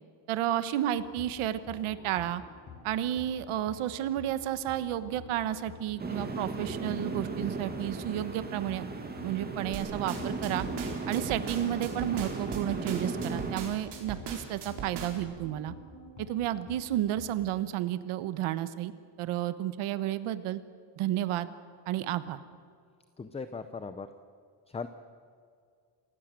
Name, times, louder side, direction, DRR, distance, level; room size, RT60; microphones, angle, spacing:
voice 1, 0.3-2.4 2.8-8.9 9.2-10.7 11.1-15.7 16.3-18.9 19.2-20.6 21.0-21.5 21.9-22.4, right 12 dB, 90° right, 13 dB, 1.3 m, -31 dB
sound 1, 0.9-17.5, left 3 dB, 35° left, 6.5 m, -50 dB
sound 2, 6.0-13.5, right 3 dB, 20° right, 2.3 m, -36 dB
sound 3, 9.7-15.3, right 6 dB, 55° right, 4.3 m, -40 dB
voice 2, 23.2-24.1 24.7-24.9, left 4 dB, 15° left, 10 dB, 0.5 m, -38 dB
28.0 x 16.0 x 7.6 m, 2.2 s
cardioid pair, 170°, 48 cm